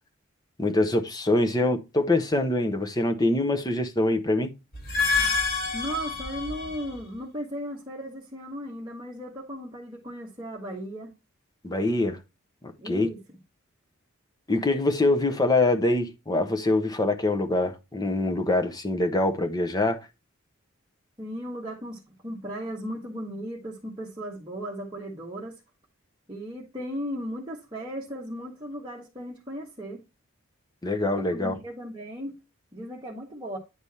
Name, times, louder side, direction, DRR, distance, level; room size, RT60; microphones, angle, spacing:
voice 1, 0.6-4.5 11.6-12.2 12.6-13.1 14.5-20.0 30.8-31.6, left 2 dB, 20° left, 0.8 m, -24 dB
sound 1, 4.7-7.0, left 4 dB, 45° left, 3.4 m, -27 dB
voice 2, 5.7-11.1 12.8-13.2 21.2-25.6 26.3-30.0 31.1-32.4 32.7-33.6, equal, 20° right, 1.4 m, -36 dB
9.6 x 3.4 x 4.1 m
head